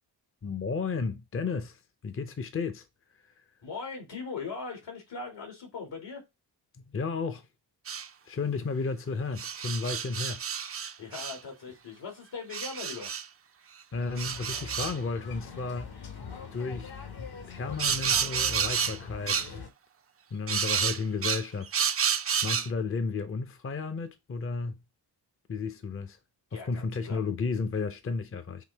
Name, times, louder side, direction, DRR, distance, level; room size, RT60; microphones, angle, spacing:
voice 1, 0.4-2.8 6.9-7.5 8.3-10.4 13.9-16.0 16.5-16.9 17.5-19.6 20.3-22.1 22.4-24.8 25.5-26.2 26.5-28.6, left 4 dB, 30° left, 0.6 m, -33 dB
voice 2, 3.6-6.2 11.0-13.1 26.5-27.2, left 4 dB, 80° left, 2.4 m, -40 dB
sound 1, 7.9-8.1 9.4-11.4 12.5-13.2 14.2-15.0 17.8-19.0 19.3-19.5 20.5-22.7, right 7 dB, 35° right, 0.4 m, -30 dB
sound 2, 13.9-19.7, left 5 dB, 60° left, 1.2 m, -43 dB
5.8 x 2.8 x 3.3 m
cardioid pair, 75°, 43 cm